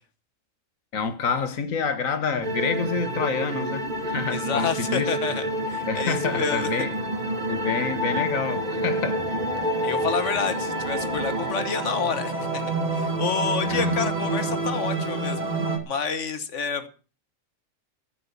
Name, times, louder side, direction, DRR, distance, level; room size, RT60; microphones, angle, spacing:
voice 1, 0.9-5.1 5.9-6.9 7.5-9.2 13.7-14.0, left 5 dB, 85° left, 1.7 m, -28 dB
sound 1, 2.4-15.8, right 1 dB, 35° right, 1.7 m, -28 dB
voice 2, 4.3-6.7 9.8-15.5 15.9-16.9, left 6 dB, 65° left, 1.5 m, -29 dB
14.0 x 6.1 x 8.2 m
omnidirectional pair, 1.4 m